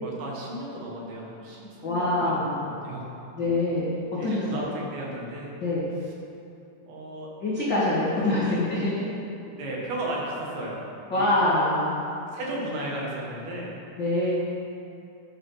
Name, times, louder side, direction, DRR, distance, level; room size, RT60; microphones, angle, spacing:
voice 1, 0.0-3.1 4.2-5.5 6.1-6.2 6.9-7.3 8.2-8.4 9.6-10.8 11.1-11.4 12.3-13.7, right 1 dB, 65° right, -4 dB, 3.2 m, -35 dB
voice 2, 1.8-2.7 3.4-3.9 4.2-4.8 5.6-5.8 7.4-9.0 11.1-12.0 14.0-14.3, left 1 dB, 75° left, -9 dB, 1.0 m, -25 dB
10.5 x 6.2 x 5.5 m, 2.6 s
omnidirectional pair, 4.9 m